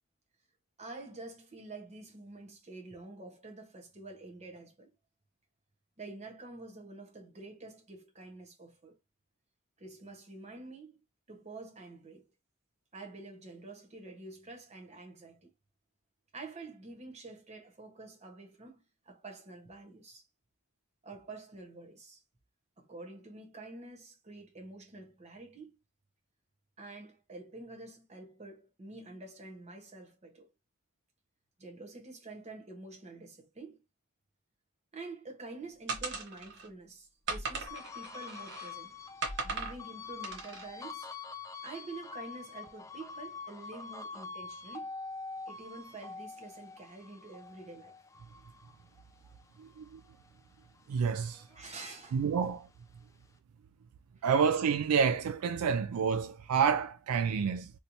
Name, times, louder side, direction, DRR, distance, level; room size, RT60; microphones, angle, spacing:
voice 1, 0.8-4.9 6.0-9.0 9.8-11.0 11.3-12.3 12.9-15.5 16.3-20.2 21.0-22.2 22.8-25.8 26.8-30.5 31.6-33.8 34.9-41.1 41.6-44.9 45.5-48.0 51.5-52.3 54.2-54.3, right 3 dB, 30° right, 1.1 m, -48 dB
sound 1, 35.9-36.7 37.3-38.7 39.2-39.8 40.2-40.7, right 4 dB, 55° right, 0.9 m, -38 dB
sound 2, 37.7-50.3 50.7-52.4, left 4 dB, 15° left, 0.3 m, -46 dB
voice 2, 49.6-50.0 50.9-51.4 52.1-52.7 54.2-57.7, right 6 dB, 90° right, 0.3 m, -29 dB
3.2 x 2.9 x 2.6 m
head